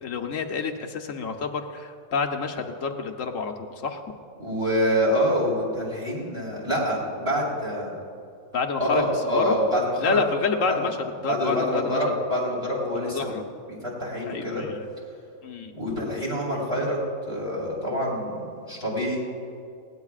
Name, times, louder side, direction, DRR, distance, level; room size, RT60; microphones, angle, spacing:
voice 1, 0.0-3.5 3.8-4.0 8.5-9.6 10.0-11.0 11.2-12.2 12.9-13.4 14.3-14.9 15.4-15.7, left 5 dB, 70° left, 4 dB, 1.4 m, -28 dB
voice 2, 4.4-7.9 8.8-10.2 10.7-10.8 11.3-14.6 15.7-17.0 17.3-19.2, equal, 20° right, -5 dB, 4.2 m, -26 dB
20.5 x 18.0 x 2.5 m, 2.4 s
omnidirectional pair, 1.4 m